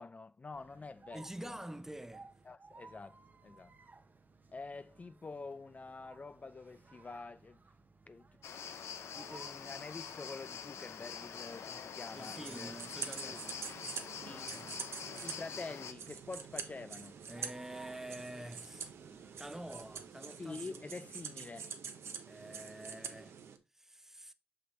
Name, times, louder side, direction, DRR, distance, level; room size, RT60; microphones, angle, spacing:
voice 1, 0.0-1.6 2.5-3.7 4.5-7.6 8.1-8.3 9.1-12.7 13.2-13.6 14.2-14.7 15.2-17.1 20.4-21.7, left 3 dB, 35° left, 0.3 m, -47 dB
sound 1, 0.5-20.2, right 3 dB, 40° right, 0.8 m, -60 dB
voice 2, 1.1-2.3 12.1-13.6 14.3-14.8 17.3-18.9 19.4-20.8 22.3-23.4 23.7-24.3, right 1 dB, 10° right, 0.7 m, -47 dB
sound 2, 8.4-15.9, left 7 dB, 80° left, 0.6 m, -45 dB
sound 3, 12.1-23.6, right 6 dB, 75° right, 0.8 m, -46 dB
6.1 x 5.7 x 3.1 m
cardioid pair, 50°, 4 cm